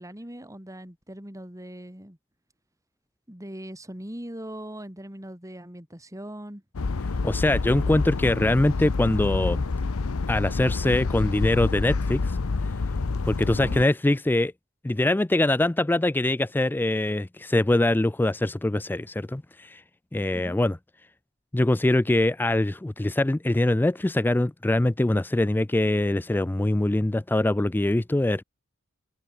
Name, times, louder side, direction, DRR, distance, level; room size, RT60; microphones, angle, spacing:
voice 1, 0.0-2.2 3.3-6.6 13.5-13.8 20.3-20.6, right 1 dB, 15° right, 3.5 m, -40 dB
sound 1, 6.7-13.8, left 3 dB, 75° left, 0.7 m, -28 dB
voice 2, 7.2-9.6 10.3-12.4 13.2-14.5 14.8-19.8 20.1-20.8 21.5-28.4, left 1 dB, 10° left, 0.4 m, -23 dB
head